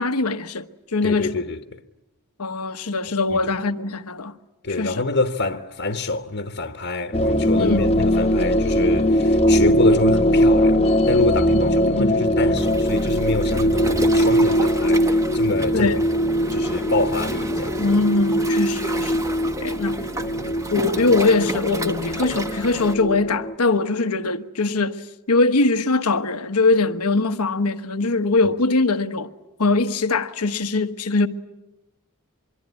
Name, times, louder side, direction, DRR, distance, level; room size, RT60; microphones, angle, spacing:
voice 1, 0.0-1.3 2.4-4.3 4.8-5.0 7.6-7.9 11.5-12.2 15.7-16.0 17.8-19.3 19.6-20.3 20.7-25.0 25.3-29.3 29.6-31.3, left 3 dB, 90° left, 1.2 m, -22 dB
voice 2, 1.0-1.6 3.3-3.4 4.6-16.2 16.5-17.8 20.2-20.5, left 2 dB, 55° left, 1.2 m, -26 dB
sound 1, 7.1-23.5, equal, 25° left, 1.1 m, -21 dB
Waves surf, 12.6-22.9, right 1 dB, 15° right, 1.1 m, -33 dB
25.0 x 23.5 x 9.7 m
head